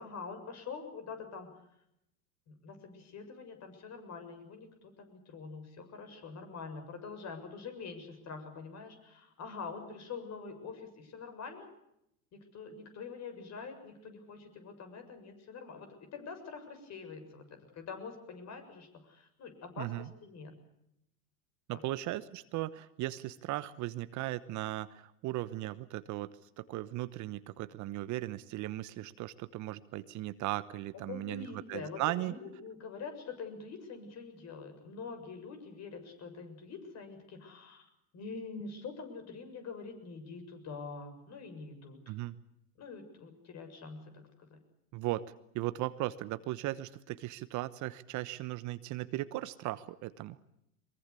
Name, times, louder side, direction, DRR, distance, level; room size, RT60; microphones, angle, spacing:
voice 1, 0.0-1.5 2.5-11.7 12.3-20.5 21.7-21.8 30.9-37.8 38.1-42.2 42.8-44.2 44.5-44.6, left 5 dB, 40° left, 7 dB, 7.1 m, -45 dB
voice 2, 19.8-20.1 21.7-32.3 42.1-42.3 44.9-45.2 45.5-50.4, right 16 dB, 45° right, 14 dB, 1.1 m, -37 dB
23.5 x 22.0 x 8.4 m, 0.80 s
hypercardioid pair, 105°, 42 cm